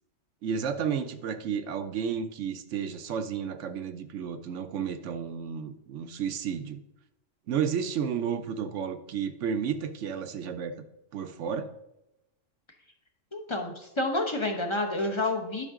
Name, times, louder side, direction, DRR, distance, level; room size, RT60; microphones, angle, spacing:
voice 1, 0.4-6.8 7.5-10.7 11.1-11.7, right 7 dB, 75° right, 9 dB, 1.0 m, -32 dB
voice 2, 13.3-15.7, left 2 dB, 25° left, 3 dB, 0.9 m, -29 dB
11.0 x 5.7 x 3.7 m, 0.88 s
omnidirectional pair, 1.3 m